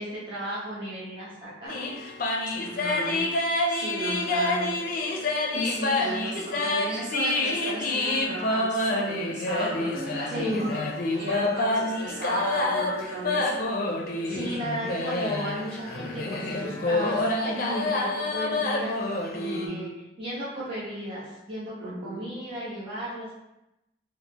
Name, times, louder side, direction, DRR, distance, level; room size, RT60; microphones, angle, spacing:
voice 1, 0.0-1.8 10.3-10.7 14.3-19.9 20.2-23.3, equal, 30° right, -9 dB, 1.1 m, -35 dB
sound 1, 1.7-19.7, left 2 dB, 50° left, 0.4 m, -28 dB
voice 2, 2.5-3.2 3.7-4.7 5.5-10.8 11.2-13.7 19.5-19.8 21.8-22.2, right 1 dB, 90° right, -5 dB, 1.1 m, -34 dB
4.0 x 2.1 x 2.8 m, 0.91 s
head